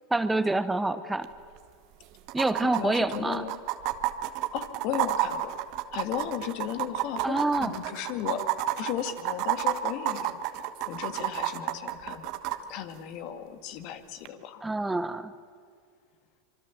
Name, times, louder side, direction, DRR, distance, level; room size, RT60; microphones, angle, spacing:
voice 1, 0.1-1.3 2.3-3.5 7.2-7.7 14.6-15.3, right 2 dB, 10° right, 12 dB, 1.0 m, -27 dB
sound 1, 1.2-1.3 1.6-1.7 2.3-12.6 14.2-14.3, right 14 dB, 55° right, 1.4 m, -30 dB
voice 2, 2.6-3.5 4.5-5.5 5.9-8.4 8.8-10.4 10.9-12.3 12.7-14.6, left 10 dB, 55° left, 9 dB, 2.1 m, -35 dB
26.0 x 24.0 x 7.3 m, 2.2 s
hypercardioid pair, 95°, 0 cm